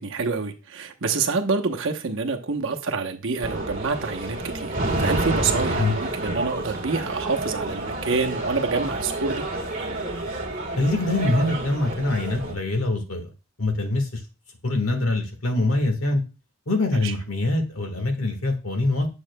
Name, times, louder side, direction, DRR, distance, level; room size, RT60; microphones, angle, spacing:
voice 1, 0.0-9.4 17.0-17.1, right 4 dB, 60° right, 0.9 m, -27 dB
sound 1, 3.4-12.5, right 2 dB, 40° right, 1.4 m, -29 dB
voice 2, 10.8-13.3 13.6-14.2 14.6-16.2 16.7-19.1, left 2 dB, 70° left, 1.5 m, -24 dB
7.2 x 6.9 x 2.2 m
head